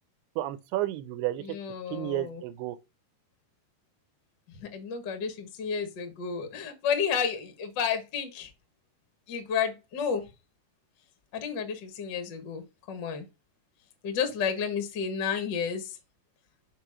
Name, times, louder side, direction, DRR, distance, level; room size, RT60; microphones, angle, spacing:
voice 1, 0.4-1.6 1.9-2.8, right 15 dB, 85° right, 2.8 m, -31 dB
voice 2, 1.4-2.4 4.6-8.5 9.3-10.2 11.3-13.3 14.0-15.9, left 7 dB, 75° left, 1.0 m, -31 dB
6.4 x 4.9 x 4.9 m
omnidirectional pair, 4.6 m